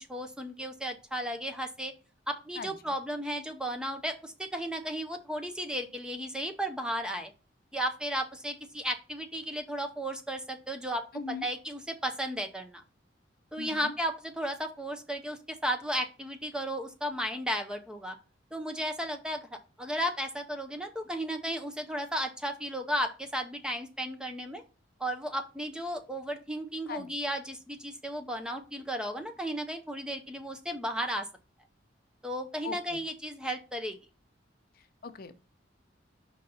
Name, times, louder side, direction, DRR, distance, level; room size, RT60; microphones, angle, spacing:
voice 1, 0.0-1.9 2.3-7.3 7.7-12.8 13.5-18.2 18.5-19.5 19.8-24.6 25.0-31.3 32.2-34.0, equal, 5° right, 6 dB, 0.6 m, -34 dB
voice 2, 2.6-2.9 11.1-11.5 13.6-13.9 26.9-27.1 32.6-33.0 34.8-35.3, left 5 dB, 50° left, 10 dB, 0.5 m, -40 dB
5.3 x 4.0 x 5.4 m, 0.34 s
head